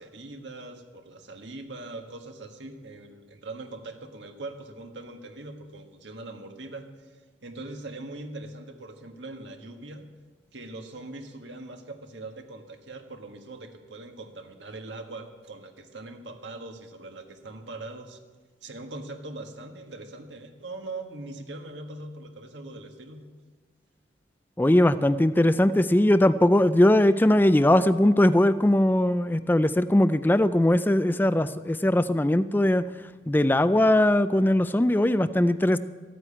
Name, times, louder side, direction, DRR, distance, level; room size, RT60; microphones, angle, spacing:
voice 1, 0.0-10.0 10.5-18.2 18.6-23.3, right 2 dB, 70° right, 4 dB, 1.6 m, -41 dB
voice 2, 24.6-32.9 33.3-35.8, left 1 dB, 10° left, 14 dB, 0.4 m, -20 dB
14.5 x 9.2 x 8.7 m, 1.4 s
head